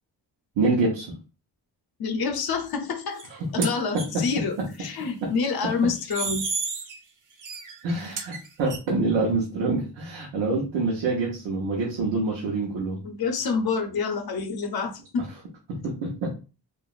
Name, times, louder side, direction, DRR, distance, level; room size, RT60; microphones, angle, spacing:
voice 1, 0.6-1.1 3.6-3.7 4.1-4.2 4.6-4.7 5.2-5.3 7.8-13.0 16.0-16.3, right 3 dB, 90° right, -2 dB, 0.9 m, -26 dB
voice 2, 2.0-3.2 3.6-6.4 13.0-15.3, left 5 dB, 55° left, 5 dB, 0.7 m, -27 dB
squealing metal, 3.2-3.3 3.6-4.1 6.0-7.0 7.4-8.8, right 4 dB, 45° right, 0.8 m, -31 dB
2.9 x 2.5 x 2.4 m, 0.33 s
cardioid pair, 60°, 44 cm